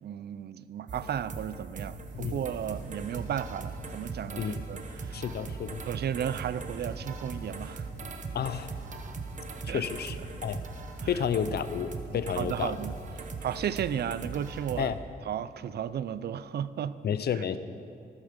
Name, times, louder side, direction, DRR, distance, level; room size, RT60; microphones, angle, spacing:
voice 1, 0.0-5.2 5.9-7.9 9.7-9.8 11.0-11.2 12.1-13.0 13.4-14.9 15.2-17.0 17.4-17.5, right 9 dB, 65° right, 15 dB, 0.5 m, -34 dB
sound 1, 0.9-14.9, right 4 dB, 45° right, 0.9 m, -40 dB
sound 2, 2.0-13.4, right 1 dB, 85° right, 3.7 m, -48 dB
voice 2, 5.1-5.8 8.3-8.7 9.7-10.2 10.4-10.6 11.1-12.7 14.8-15.0 17.0-17.6, left 8 dB, 65° left, 12 dB, 0.6 m, -31 dB
14.5 x 12.5 x 5.1 m, 2.5 s
wide cardioid pair, 170°, 18 cm